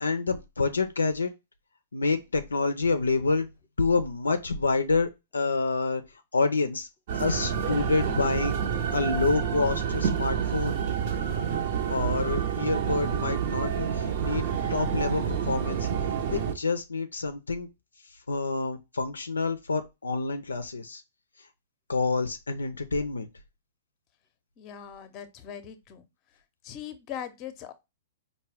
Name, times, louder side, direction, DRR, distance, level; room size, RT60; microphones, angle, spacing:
voice 1, 0.0-1.3 1.9-3.5 3.8-6.0 6.3-6.9 7.1-8.6 8.9-10.8 11.9-14.4 14.7-15.9 16.3-17.7 18.3-21.0 21.9-23.3, left 3 dB, 85° left, 0.4 m, -27 dB
sound 1, 7.1-16.5, right 7 dB, 55° right, 0.7 m, -28 dB
voice 2, 24.6-26.1 26.6-27.7, left 9 dB, 35° left, 0.7 m, -40 dB
4.5 x 2.2 x 3.4 m
hypercardioid pair, 115°, 0 cm